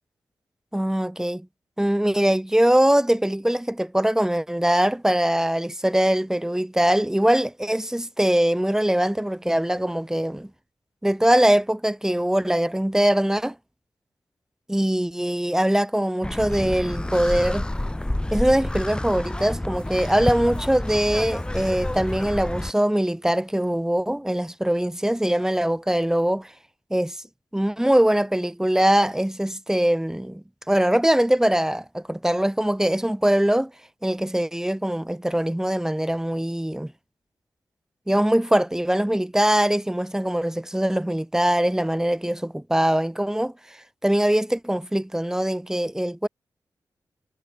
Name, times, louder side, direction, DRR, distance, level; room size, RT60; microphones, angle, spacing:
voice 1, 0.7-1.5 1.8-10.5 11.0-13.5 14.7-17.6 18.3-26.5 26.9-27.2 27.5-33.7 34.0-36.9 38.1-46.3, right 1 dB, 5° right, 3.3 m, -22 dB
sound 1, 16.2-22.7, left 1 dB, 10° left, 0.9 m, -29 dB
wide cardioid pair, 80°, 7 cm